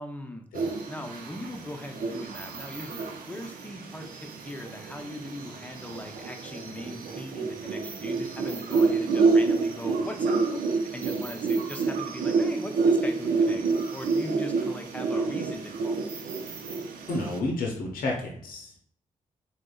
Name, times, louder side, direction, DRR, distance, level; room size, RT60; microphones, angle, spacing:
voice 1, 0.0-16.0, left 1 dB, 10° left, 4 dB, 0.6 m, -40 dB
sound 1, 0.5-17.4, right 4 dB, 80° right, 0.5 m, -28 dB
voice 2, 17.1-18.8, left 2 dB, 80° left, -1 dB, 0.6 m, -31 dB
3.4 x 2.1 x 2.3 m, 0.64 s
supercardioid pair, 45°, 14 cm